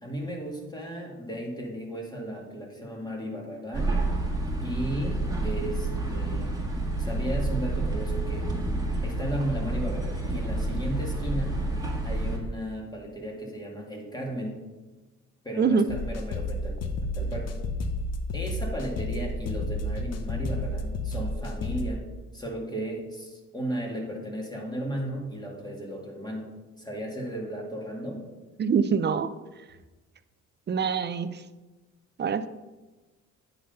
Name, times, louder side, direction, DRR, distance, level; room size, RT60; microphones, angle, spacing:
voice 1, 0.0-4.0 4.6-6.5 7.0-8.5 9.0-11.7 12.0-14.6 15.4-16.8 17.1-17.5 18.3-22.0 22.3-26.5 26.8-28.3, right 1 dB, 15° left, -1 dB, 2.0 m, -35 dB
sound 1, 3.7-12.4, right 2 dB, 10° right, 1.6 m, -29 dB
sound 2, 15.9-21.9, left 1 dB, 55° left, 0.8 m, -31 dB
voice 2, 28.6-29.3 30.7-31.4 32.2-32.5, right 6 dB, 35° right, 12 dB, 0.5 m, -24 dB
9.3 x 4.0 x 5.4 m, 1.2 s
cardioid pair, 90°, 30 cm